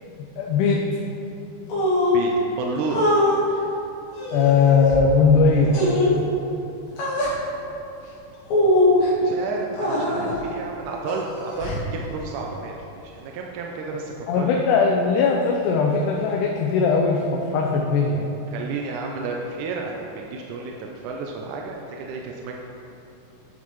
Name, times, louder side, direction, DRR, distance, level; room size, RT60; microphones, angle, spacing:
voice 1, 0.4-0.8 4.3-5.8 14.3-18.3, left 5 dB, 85° left, 0 dB, 2.1 m, -19 dB
sound 1, 1.7-2.2 2.9-3.4 4.1-5.0 5.7-6.2 7.0-7.4 8.5-9.1 9.7-10.4 11.1-11.9, left 1 dB, 70° left, 2.8 m, -22 dB
voice 2, 2.0-3.1 9.2-14.6 18.5-22.6, right 4 dB, 90° right, 0 dB, 2.1 m, -31 dB
9.7 x 7.3 x 3.1 m, 2.9 s
omnidirectional pair, 3.5 m